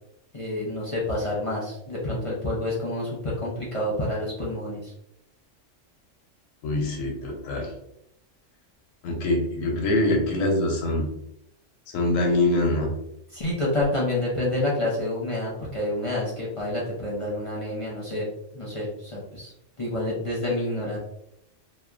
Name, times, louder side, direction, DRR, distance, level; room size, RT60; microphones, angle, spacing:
voice 1, 0.3-4.9 13.3-18.2 18.5-19.5 19.8-21.0, left 1 dB, 40° left, -6 dB, 0.5 m, -28 dB
voice 2, 6.6-7.7 9.0-11.1 11.9-13.0, left 1 dB, 90° left, 1 dB, 1.0 m, -24 dB
2.8 x 2.1 x 2.3 m, 0.80 s
omnidirectional pair, 1.3 m